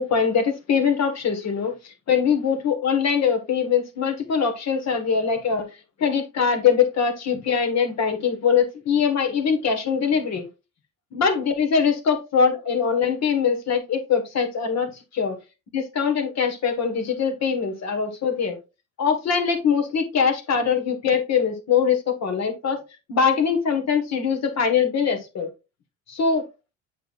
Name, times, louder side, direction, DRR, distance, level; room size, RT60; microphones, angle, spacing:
voice 1, 0.0-5.7 6.0-10.5 11.1-15.4 15.7-18.6 19.0-22.8 23.1-25.5 26.1-26.4, left 6 dB, 50° left, 5 dB, 1.6 m, -22 dB
7.4 x 5.4 x 2.5 m, 0.28 s
supercardioid pair, 85°, 34 cm